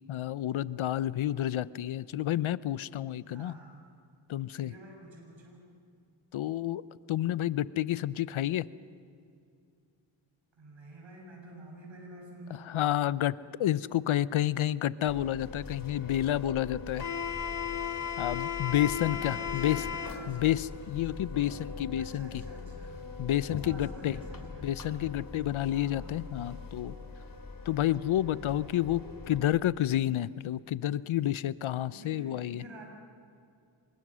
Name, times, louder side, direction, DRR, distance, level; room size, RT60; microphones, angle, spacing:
voice 1, 0.1-3.5 4.3-4.7 6.3-6.8 7.1-8.7 12.6-17.1 18.2-19.8 20.3-22.4 23.2-24.2 24.6-27.0 27.7-32.6, left 12 dB, 80° left, 17 dB, 0.7 m, -30 dB
voice 2, 3.3-3.9 4.5-5.6 10.6-12.7 18.8-20.6 22.0-23.1 23.6-24.7 25.7-26.2 31.9-32.8, right 2 dB, 70° right, 0 dB, 7.9 m, -50 dB
sound 1, 15.1-29.4, left 6 dB, 45° left, 3.3 m, -39 dB
26.5 x 24.0 x 6.3 m, 2.3 s
cardioid pair, 65°, 48 cm